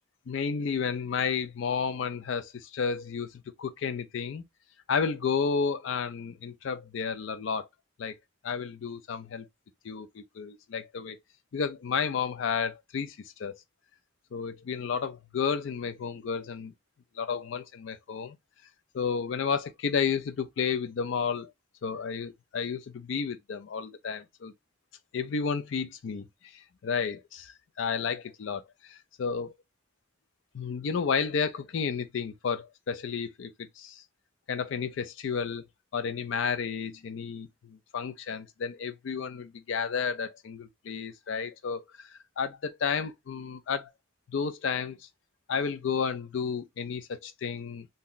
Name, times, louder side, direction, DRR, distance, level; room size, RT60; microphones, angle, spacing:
voice 1, 0.3-3.3 3.6-4.4 4.9-7.7 8.0-8.2 8.4-9.5 9.8-11.2 11.5-13.6 14.3-16.7 17.2-18.4 18.9-21.5 21.8-24.5 25.1-26.3 26.5-29.5 30.5-34.0 34.5-35.6 35.9-43.9 44.3-45.0 45.5-47.9, left 6 dB, 80° left, 0.4 m, -32 dB
2.7 x 2.1 x 3.7 m
head